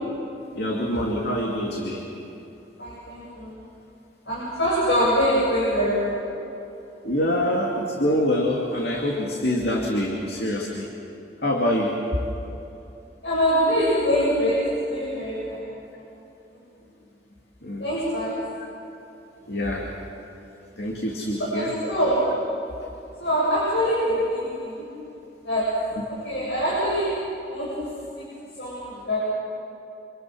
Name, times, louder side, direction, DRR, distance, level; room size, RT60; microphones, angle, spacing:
voice 1, 0.6-2.0 7.0-10.9 11.4-12.0 17.6-17.8 19.5-19.9 20.8-21.7, left 1 dB, 65° left, -1 dB, 2.7 m, -25 dB
voice 2, 2.8-3.6 4.2-6.3 12.5-12.7 13.2-16.1 17.8-18.7 21.4-22.4 23.2-24.9 25.4-27.2 27.5-27.9 28.2-28.3 28.5-29.2, equal, 80° left, -7 dB, 7.9 m, -24 dB
28.0 x 27.5 x 6.4 m, 2.9 s
head